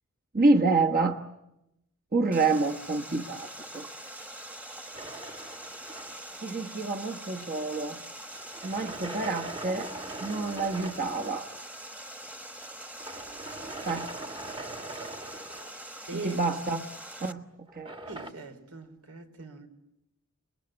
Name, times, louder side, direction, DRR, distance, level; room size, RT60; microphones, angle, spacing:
voice 1, 0.3-1.2 2.1-3.9 6.4-8.0 8.6-9.9 10.2-11.5 13.8-14.1 16.1-16.9 17.2-17.9, right 3 dB, 45° right, 1.1 m, -28 dB
Water, 2.3-17.3, right 1 dB, 5° right, 1.2 m, -43 dB
sound 1, 4.9-6.5 8.3-11.5 13.0-16.2 17.7-18.3, right 2 dB, 25° right, 1.2 m, -41 dB
voice 2, 18.1-19.7, right 3 dB, 90° right, 3.5 m, -41 dB
30.0 x 21.5 x 8.9 m
head